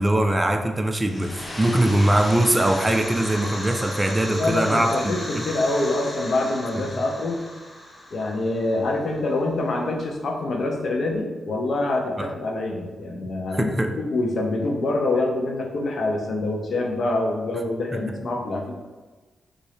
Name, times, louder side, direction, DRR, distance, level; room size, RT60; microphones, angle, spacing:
voice 1, 0.0-5.4 12.2-12.3 13.5-13.9 17.9-18.0, right 1 dB, 20° right, 4 dB, 0.5 m, -22 dB
sound 1, 1.0-9.6, left 1 dB, 25° left, 1.0 m, -35 dB
voice 2, 4.3-7.4 8.1-13.7 14.1-18.7, left 2 dB, 65° left, 1 dB, 0.8 m, -25 dB
4.1 x 2.7 x 4.9 m, 1.3 s
cardioid pair, 75°, 0 cm